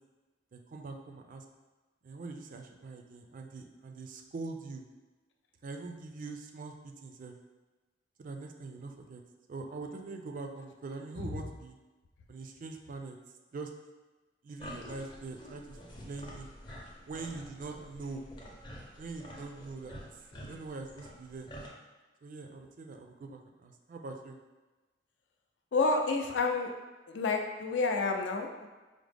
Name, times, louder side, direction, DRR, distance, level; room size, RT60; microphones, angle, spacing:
voice 1, 0.5-1.4 2.0-4.8 5.6-7.4 8.2-9.2 9.5-11.8 12.3-13.2 13.5-13.7 14.4-15.8 16.0-16.5 17.1-18.2 19.0-20.0 20.4-21.5 22.2-24.4, right 3 dB, 45° right, 4 dB, 0.4 m, -43 dB
sound 1, 14.6-21.7, equal, 25° left, 0.6 m, -48 dB
voice 2, 25.7-26.7 27.1-28.7, left 3 dB, 70° left, 3 dB, 0.4 m, -29 dB
4.8 x 2.0 x 3.3 m, 1.2 s
head